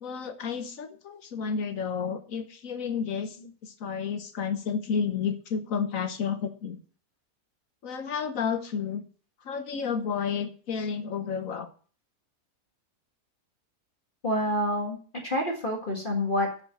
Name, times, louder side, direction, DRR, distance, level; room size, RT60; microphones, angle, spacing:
voice 1, 0.0-3.4 3.6-6.8 7.8-9.0 9.4-11.7, left 6 dB, 65° left, 9 dB, 1.4 m, -31 dB
voice 2, 14.2-15.0 15.2-16.6, equal, 35° left, 0 dB, 1.9 m, -27 dB
7.4 x 6.5 x 7.3 m, 0.42 s
omnidirectional pair, 1.6 m